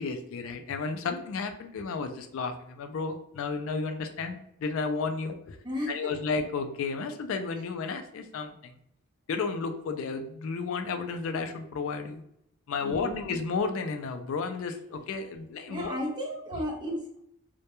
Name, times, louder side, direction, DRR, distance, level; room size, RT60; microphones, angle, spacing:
voice 1, 0.0-5.6 5.9-8.8 9.3-12.2 12.7-16.0, left 4 dB, 65° left, 6 dB, 0.3 m, -32 dB
voice 2, 5.6-6.1 12.8-13.3 15.7-17.2, left 1 dB, 20° right, 0 dB, 0.5 m, -34 dB
2.2 x 2.1 x 2.9 m, 0.74 s
head